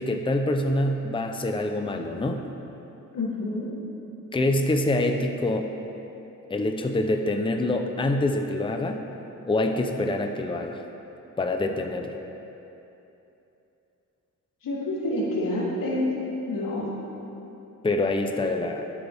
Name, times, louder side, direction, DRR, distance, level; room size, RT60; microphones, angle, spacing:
voice 1, 0.0-2.4 4.3-5.7 6.5-9.1 9.5-10.8 11.4-12.2 17.8-18.8, left 2 dB, 15° left, 4 dB, 0.7 m, -25 dB
voice 2, 3.1-3.7 14.6-16.1 16.5-16.9, left 1 dB, 85° left, -6 dB, 3.2 m, -28 dB
21.5 x 8.5 x 3.6 m, 2.9 s
wide cardioid pair, 120°, 32 cm